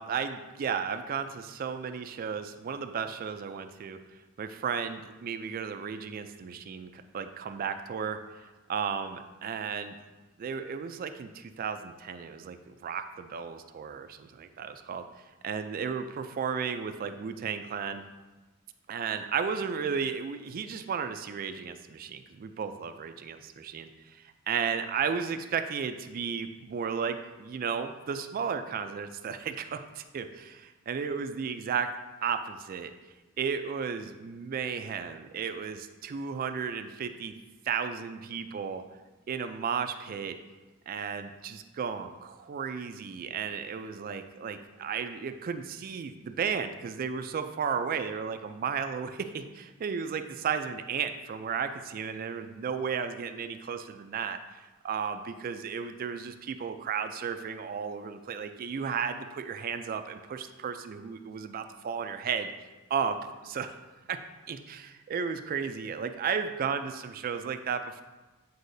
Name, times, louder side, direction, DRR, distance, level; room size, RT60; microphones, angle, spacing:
voice 1, 0.0-4.0 4.4-8.2 8.7-9.9 10.4-15.0 15.4-18.0 18.9-31.9 32.2-32.9 33.4-37.3 37.7-38.8 39.3-40.4 40.9-54.4 54.8-62.5 62.9-63.2 63.4-63.7 64.1-64.2 64.5-68.0, right 6 dB, 40° right, 8 dB, 0.3 m, -34 dB
8.1 x 4.7 x 2.6 m, 1.2 s
head